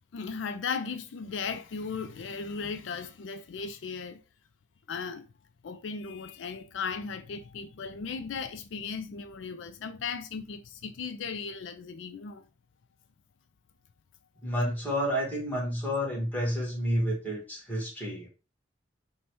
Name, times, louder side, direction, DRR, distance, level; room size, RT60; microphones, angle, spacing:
voice 1, 0.1-4.2 4.9-5.3 5.6-12.5, left 5 dB, 85° left, 0.4 m, -36 dB
voice 2, 14.4-18.3, equal, 10° left, 1.4 m, -30 dB
5.2 x 2.2 x 2.9 m
head